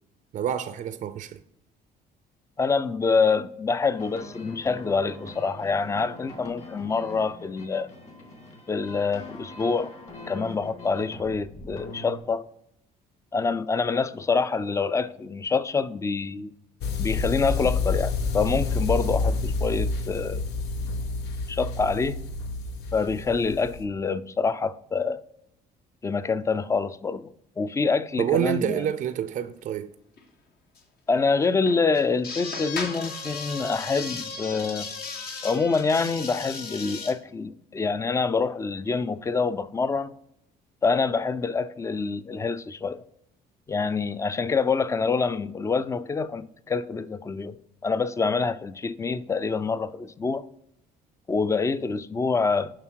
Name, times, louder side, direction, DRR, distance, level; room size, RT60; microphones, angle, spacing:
voice 1, 0.3-1.4 28.2-29.9, right 9 dB, 50° right, 0.5 m, -27 dB
voice 2, 2.6-7.9 8.7-9.9 10.3-12.4 13.3-16.5 17.0-20.4 21.5-22.2 22.9-25.2 26.0-28.9 31.1-34.9 35.4-40.1 40.8-43.0 43.7-50.4 51.3-52.7, left 4 dB, 15° left, 0.4 m, -26 dB
sound 1, 3.9-12.2, left 1 dB, 40° left, 2.4 m, -43 dB
sound 2, 16.8-23.8, left 3 dB, 80° left, 0.8 m, -28 dB
sound 3, 29.0-29.1 29.3-29.4 30.2-30.3 30.8-30.9 31.4-37.1, left 4 dB, 65° left, 1.6 m, -36 dB
7.4 x 5.6 x 4.5 m
cardioid pair, 110°, 17 cm